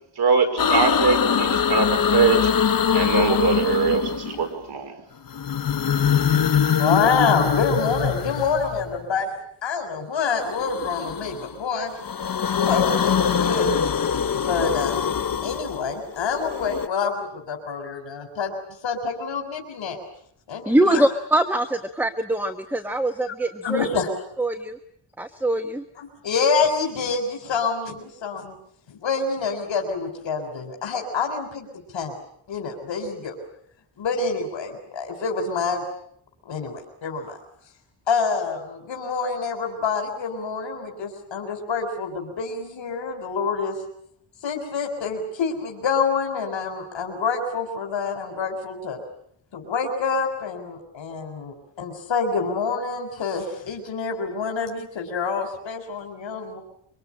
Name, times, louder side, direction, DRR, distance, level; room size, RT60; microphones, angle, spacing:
voice 1, 0.2-2.5 2.9-4.9, right 5 dB, 60° right, 4.8 m, -22 dB
sound 1, 0.6-4.5 5.3-9.0 10.4-11.5 11.9-16.9, left 7 dB, 50° left, 1.1 m, -23 dB
voice 2, 6.8-9.3 9.6-12.0 12.6-13.8 14.3-15.1 15.4-18.5 18.8-20.0 20.5-21.1 23.6-24.1 26.0-28.5 28.9-31.7 31.9-32.2 32.5-33.3 34.0-35.8 36.5-37.4 38.1-43.8 44.4-49.0 49.5-56.6, left 5 dB, 75° left, 4.1 m, -27 dB
voice 3, 20.7-23.8 24.4-24.8 25.2-25.8, right 1 dB, 5° right, 1.2 m, -23 dB
25.0 x 24.5 x 8.7 m
wide cardioid pair, 125°, 45 cm